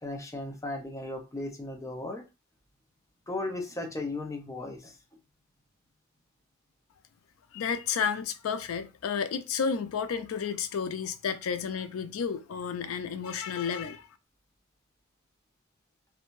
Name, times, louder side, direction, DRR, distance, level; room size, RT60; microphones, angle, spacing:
voice 1, 0.0-2.2 3.3-4.9, left 2 dB, 15° left, 0.5 m, -36 dB
voice 2, 7.5-14.1, left 6 dB, 80° left, 0.4 m, -31 dB
2.5 x 2.1 x 3.0 m
head